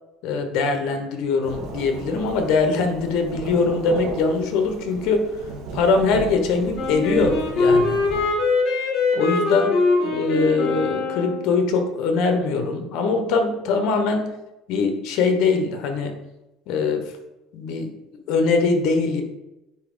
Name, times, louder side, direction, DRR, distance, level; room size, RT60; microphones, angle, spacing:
voice 1, 0.2-5.3 5.7-8.0 9.1-9.8 10.0-14.3 14.7-16.2 16.7-17.1 17.5-17.9 18.3-19.2, left 4 dB, 65° left, 5 dB, 1.1 m, -22 dB
Thunderstorm / Rain, 1.4-8.2, right 3 dB, 60° right, 1.4 m, -35 dB
Wind instrument woodwind instrument, 6.7-11.5, left 3 dB, 45° left, 2.5 m, -22 dB
9.2 x 3.4 x 3.8 m, 0.96 s
cardioid pair, 135°, 0 cm